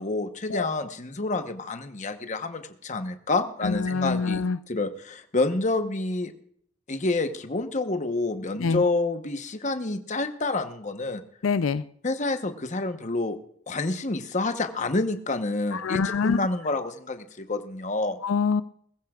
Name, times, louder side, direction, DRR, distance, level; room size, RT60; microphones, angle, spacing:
voice 1, 0.0-6.3 6.9-11.2 12.0-13.4 13.7-18.2, left 2 dB, 35° left, 1.0 m, -28 dB
voice 2, 3.6-4.6 8.6-8.8 11.4-11.8 15.7-16.4 18.2-18.6, left 5 dB, 90° left, 0.5 m, -25 dB
21.5 x 15.0 x 2.4 m
head